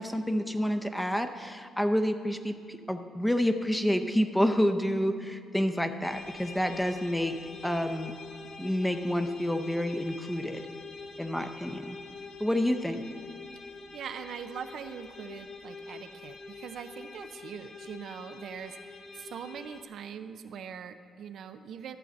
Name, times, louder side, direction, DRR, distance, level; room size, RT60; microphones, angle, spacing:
voice 1, 0.0-7.4 7.6-8.1 8.6-10.6 11.2-12.0 12.4-13.0, equal, 5° left, 7 dB, 0.6 m, -28 dB
sound 1, 6.0-19.8, left 4 dB, 55° left, 0.9 m, -46 dB
voice 2, 13.6-22.0, right 7 dB, 70° right, 9 dB, 0.4 m, -42 dB
12.0 x 4.0 x 7.5 m, 2.1 s
cardioid pair, 90°, 0 cm